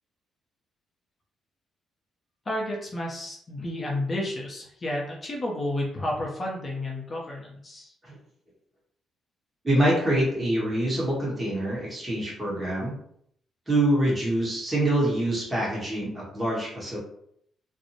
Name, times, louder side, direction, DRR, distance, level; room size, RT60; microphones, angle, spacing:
voice 1, 2.5-7.9, left 1 dB, 30° left, -2 dB, 0.6 m, -31 dB
voice 2, 9.6-12.9 13.7-17.0, right 1 dB, 15° right, -6 dB, 1.1 m, -25 dB
2.6 x 2.0 x 2.8 m, 0.69 s
cardioid pair, 90°, 0 cm